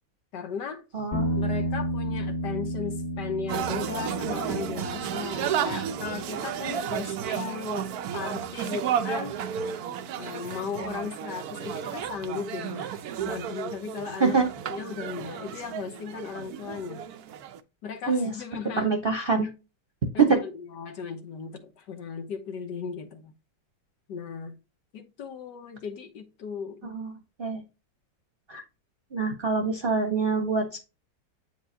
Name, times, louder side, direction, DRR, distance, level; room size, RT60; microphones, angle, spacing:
voice 1, 0.3-0.8 1.4-9.4 10.2-13.0 13.2-14.4 14.7-17.0 17.8-18.9 19.4-19.5 20.1-23.3 24.1-24.6 24.9-26.9, left 6 dB, 70° left, 1.5 m, -36 dB
voice 2, 0.9-1.3 14.2-14.5 18.1-18.3 18.8-19.5 20.2-20.4 26.8-27.1 27.4-27.6 28.5-28.6 29.1-30.8, right 4 dB, 35° right, 1.0 m, -24 dB
sound 1, 1.1-9.5, equal, 35° left, 1.5 m, -34 dB
sound 2, 3.5-17.6, right 9 dB, 70° right, 1.0 m, -33 dB
7.9 x 4.7 x 2.7 m
omnidirectional pair, 2.0 m